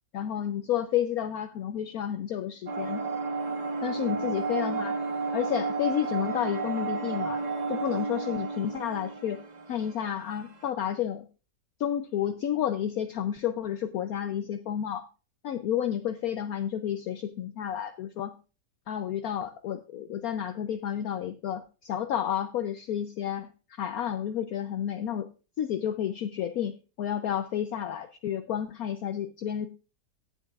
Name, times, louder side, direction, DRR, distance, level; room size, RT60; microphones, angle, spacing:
voice 1, 0.1-3.0 3.8-5.0 5.3-9.4 9.7-11.3 11.8-15.1 15.4-18.3 18.9-25.3 25.6-29.7, left 10 dB, 65° left, 9 dB, 1.0 m, -31 dB
sound 1, 2.7-10.6, right 4 dB, 35° right, 0.8 m, -32 dB
16.5 x 8.3 x 2.4 m, 0.33 s
omnidirectional pair, 1.9 m